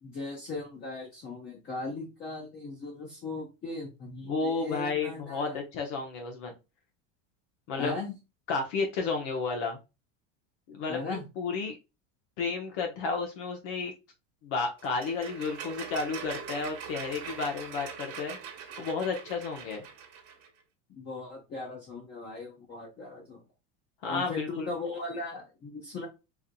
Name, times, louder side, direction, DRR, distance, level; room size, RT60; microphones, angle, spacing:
voice 1, 0.0-5.6 7.7-8.1 10.9-11.2 20.9-23.4 24.1-26.1, left 3 dB, 30° left, -3 dB, 1.1 m, -38 dB
voice 2, 4.3-6.5 7.7-7.9 8.5-9.8 10.7-11.8 12.4-13.9 14.4-18.4 18.8-19.8 24.0-24.7, left 4 dB, 65° left, 3 dB, 1.1 m, -32 dB
sound 1, 14.8-20.5, right 7 dB, 40° right, 1.1 m, -42 dB
4.7 x 2.7 x 2.2 m, 0.26 s
supercardioid pair, 145°, 38 cm